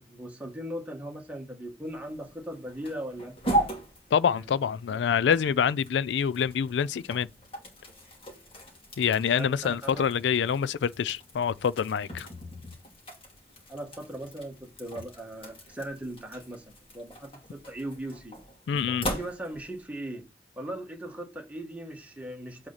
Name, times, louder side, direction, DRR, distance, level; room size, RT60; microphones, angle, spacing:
voice 1, 0.0-3.7 4.3-4.6 4.8-5.3 9.3-10.1 13.7-18.4 19.1-20.2 20.5-22.7, right 1 dB, 10° right, 1.6 m, -39 dB
sound 1, 1.8-19.8, right 1 dB, 30° left, 2.4 m, -38 dB
voice 2, 4.1-7.3 9.0-12.3 18.7-19.1, left 7 dB, 90° left, 0.3 m, -26 dB
7.6 x 4.3 x 4.1 m
head